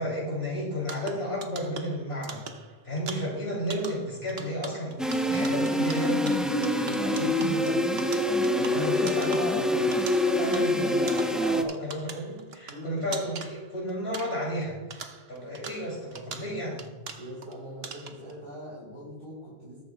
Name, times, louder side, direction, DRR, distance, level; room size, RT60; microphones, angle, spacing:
voice 1, 0.0-2.4 2.8-9.4 9.7-9.8 10.2-16.9, equal, 75° left, -4 dB, 3.2 m, -33 dB
sound 1, 0.8-14.6 14.9-17.5 17.8-18.3, right 5 dB, 75° right, 1.1 m, -43 dB
sound 2, 5.0-11.6, left 1 dB, ahead, 0.6 m, -25 dB
voice 2, 8.7-9.8 12.7-13.0 17.2-19.8, equal, 60° right, -8 dB, 4.0 m, -39 dB
20.0 x 9.5 x 2.3 m, 1.2 s
omnidirectional pair, 1.0 m